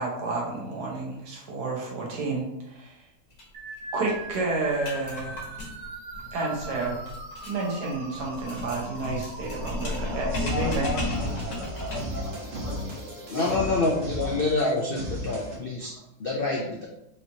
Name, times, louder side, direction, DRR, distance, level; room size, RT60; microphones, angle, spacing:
voice 1, 0.0-3.0 3.9-5.5 6.3-7.1 7.5-10.9, right 3 dB, 90° right, -3 dB, 1.5 m, -30 dB
sound 1, 3.3-3.4 3.7-3.8 4.1-12.2, left 2 dB, 55° left, 1.5 m, -34 dB
sound 2, 3.5-13.5, right 2 dB, 70° right, 1.2 m, -42 dB
voice 2, 10.1-12.9 13.3-14.3 15.9-16.0, left 3 dB, 40° left, -7 dB, 0.8 m, -37 dB
sound 3, 10.3-15.6, left 1 dB, 50° right, 1.0 m, -35 dB
voice 3, 13.3-16.9, left 3 dB, 75° left, -2 dB, 0.5 m, -27 dB
4.9 x 2.9 x 2.7 m, 0.84 s
omnidirectional pair, 1.7 m